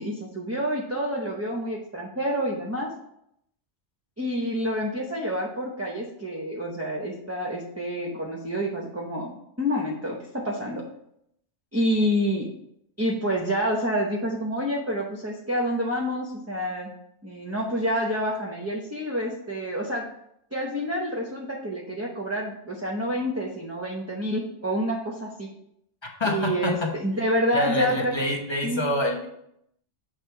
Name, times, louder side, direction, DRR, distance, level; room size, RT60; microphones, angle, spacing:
voice 1, 0.0-2.9 4.2-10.8 11.7-12.5 13.0-16.9 17.2-20.1 20.5-25.5 26.2-28.1 28.6-28.8, equal, 15° right, -2 dB, 0.7 m, -28 dB
voice 2, 26.2-26.9 27.5-29.3, left 1 dB, 25° left, 1 dB, 1.0 m, -26 dB
7.3 x 3.3 x 4.6 m, 0.75 s
omnidirectional pair, 1.2 m